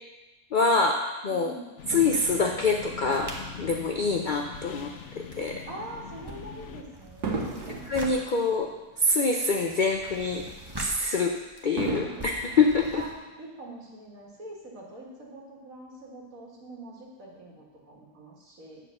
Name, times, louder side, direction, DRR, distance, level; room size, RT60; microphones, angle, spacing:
voice 1, 0.5-1.5 1.9-4.9 5.2-5.6 7.9-8.7 9.0-10.5 10.8-11.4 11.6-13.0, left 3 dB, 75° left, 2 dB, 0.4 m, -25 dB
voice 2, 1.3-1.7 5.7-7.6 12.9-13.1 13.4-18.8, right 1 dB, 60° right, -3 dB, 2.1 m, -44 dB
sound 1, 1.8-6.8, left 6 dB, 55° left, 0.9 m, -42 dB
Fireworks, 1.9-4.5 5.1-5.3 7.2-9.7 10.1-10.2 11.8-13.6 14.4-14.5, right 3 dB, 90° right, 1.6 m, -38 dB
sound 2, 2.7-4.9 5.2-13.1, right 1 dB, 20° right, 0.8 m, -44 dB
8.6 x 4.7 x 6.5 m, 1.1 s
omnidirectional pair, 1.6 m